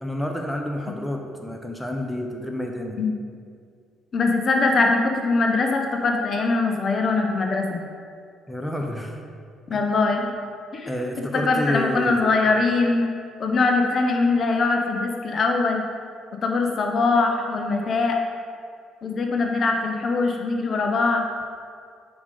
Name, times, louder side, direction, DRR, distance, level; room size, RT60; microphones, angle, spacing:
voice 1, 0.0-3.0 8.5-9.2 10.9-12.3, left 1 dB, 5° left, 2 dB, 0.9 m, -29 dB
voice 2, 4.1-7.8 9.7-10.3 10.7-10.9 11.3-13.0 13.4-15.8 16.4-18.2 19.0-21.2, left 3 dB, 50° left, 2 dB, 0.8 m, -22 dB
5.2 x 4.9 x 5.3 m, 2.2 s
hypercardioid pair, 60°, 0 cm